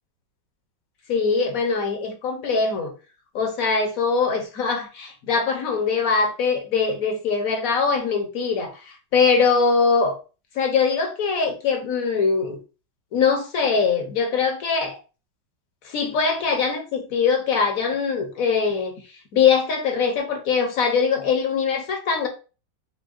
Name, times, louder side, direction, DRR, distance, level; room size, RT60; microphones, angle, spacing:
voice 1, 1.1-2.9 3.3-10.1 10.5-12.6 13.1-15.0 15.8-18.9 19.3-22.3, left 5 dB, 55° left, 1.1 m, -22 dB
5.9 x 2.2 x 2.5 m
omnidirectional pair, 2.1 m